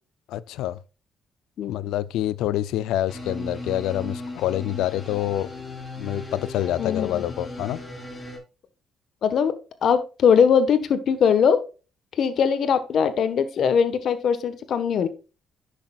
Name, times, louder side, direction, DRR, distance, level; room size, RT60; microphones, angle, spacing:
voice 1, 0.3-0.8 1.7-5.5 6.0-7.8, left 13 dB, 90° left, 0.4 m, -27 dB
sound 1, 3.1-8.4, left 2 dB, 15° left, 4.1 m, -37 dB
voice 2, 6.8-7.2 9.2-9.5 9.8-11.6 12.2-15.1, left 7 dB, 65° left, 1.3 m, -21 dB
10.0 x 6.6 x 2.4 m
cardioid pair, 90°, 0 cm